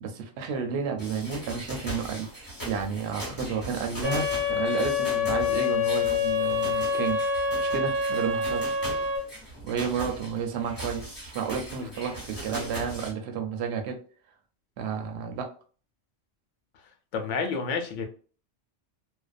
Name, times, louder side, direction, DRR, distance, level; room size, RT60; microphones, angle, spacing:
voice 1, 0.0-7.2 7.6-8.8 9.6-14.0 14.8-15.5, right 6 dB, 70° right, 4 dB, 0.8 m, -31 dB
sound 1, 1.0-13.1, equal, 15° left, 1.1 m, -39 dB
sound 2, 4.0-9.2, left 5 dB, 25° right, 0.8 m, -26 dB
voice 2, 17.1-18.1, left 5 dB, 80° left, 4 dB, 0.9 m, -30 dB
2.5 x 2.1 x 2.4 m, 0.41 s
omnidirectional pair, 1.3 m